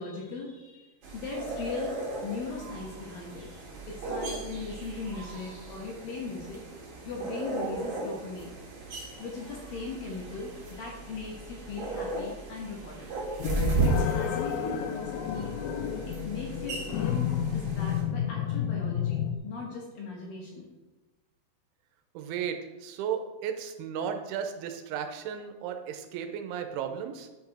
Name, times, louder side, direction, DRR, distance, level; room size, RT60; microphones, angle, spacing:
voice 1, 0.0-1.9 2.2-6.6 7.0-8.5 9.2-10.5 10.8-13.1 13.8-15.5 16.1-20.6, left 4 dB, 65° left, -3 dB, 2.5 m, -39 dB
sound 1, 1.0-18.0, right 3 dB, 45° right, 2.0 m, -35 dB
sound 2, 13.4-19.4, left 9 dB, 85° left, 2.8 m, -31 dB
voice 2, 22.1-27.3, right 8 dB, 90° right, 7 dB, 3.1 m, -35 dB
10.0 x 6.0 x 4.3 m, 1.1 s
omnidirectional pair, 5.5 m